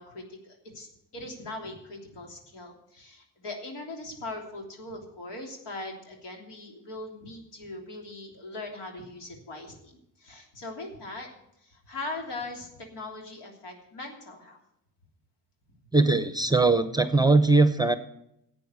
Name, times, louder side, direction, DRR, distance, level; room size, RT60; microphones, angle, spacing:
voice 1, 0.0-11.3 11.6-14.6, left 2 dB, 75° left, 2 dB, 3.2 m, -40 dB
voice 2, 15.9-18.0, right 3 dB, 10° right, 10 dB, 0.8 m, -20 dB
11.5 x 8.3 x 8.2 m, 0.79 s
cardioid pair, 80°, 41 cm